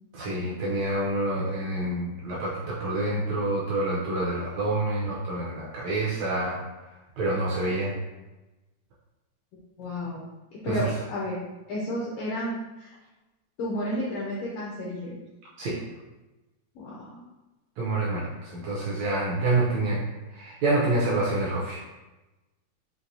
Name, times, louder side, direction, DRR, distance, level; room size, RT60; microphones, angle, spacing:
voice 1, 0.1-6.6 7.2-7.9 10.7-10.9 15.6-15.8 17.8-20.0 20.3-21.8, right 2 dB, 80° right, -5 dB, 1.6 m, -27 dB
voice 2, 9.8-10.2 10.6-12.9 13.6-15.2 16.7-17.2, equal, 90° left, -5 dB, 1.4 m, -32 dB
6.1 x 2.5 x 2.6 m, 1.1 s
omnidirectional pair, 3.7 m